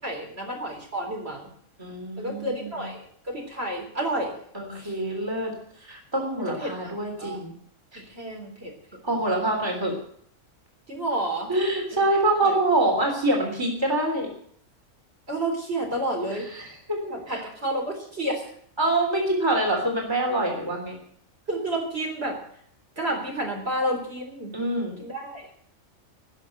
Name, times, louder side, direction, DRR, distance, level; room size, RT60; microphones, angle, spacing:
voice 1, 0.0-1.5 2.2-4.4 4.8-5.0 6.6-7.4 7.9-8.7 10.9-11.5 11.9-12.0 12.4-12.6 15.3-16.5 17.1-18.5 21.5-22.4 23.0-24.5 25.0-25.5, right 1 dB, 50° right, 0 dB, 4.0 m, -30 dB
voice 2, 1.8-2.9 4.5-5.5 5.9-7.5 9.0-10.0 11.5-14.3 16.3-17.0 17.3-17.4 18.8-21.0 24.5-25.0, right 2 dB, 20° right, 1 dB, 3.6 m, -25 dB
19.0 x 6.7 x 9.2 m, 0.64 s
omnidirectional pair, 1.4 m